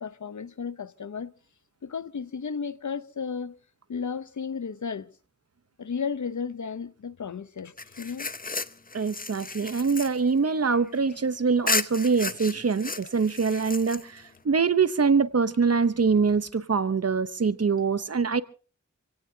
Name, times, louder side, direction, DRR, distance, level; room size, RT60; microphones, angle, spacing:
voice 1, 0.0-1.3 1.8-3.6 3.9-5.1 5.8-8.3, left 6 dB, 70° left, 0.9 m, -34 dB
sound 1, 7.8-11.2 11.7-14.4, left 3 dB, 30° left, 0.8 m, -33 dB
voice 2, 8.9-18.4, right 5 dB, 55° right, 0.9 m, -24 dB
27.5 x 17.5 x 2.8 m
wide cardioid pair, 60°, 30 cm